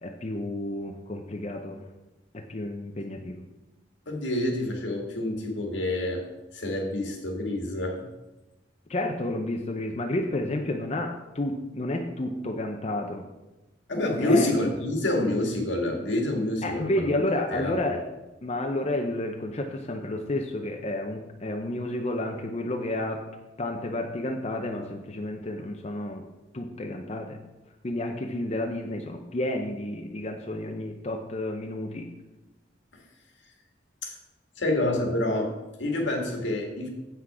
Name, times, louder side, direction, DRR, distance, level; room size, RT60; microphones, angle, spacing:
voice 1, 0.0-1.8 2.3-3.4 8.9-13.2 14.2-14.5 16.6-18.0 18.4-23.2 23.6-26.2 26.5-27.4 27.8-32.1, left 1 dB, 35° left, 2 dB, 0.6 m, -31 dB
voice 2, 4.1-6.3 6.5-8.1 13.9-17.1 17.5-17.8 34.0-34.1 34.6-36.9, left 1 dB, 80° left, 1 dB, 1.8 m, -27 dB
7.9 x 5.9 x 4.8 m, 1.1 s
head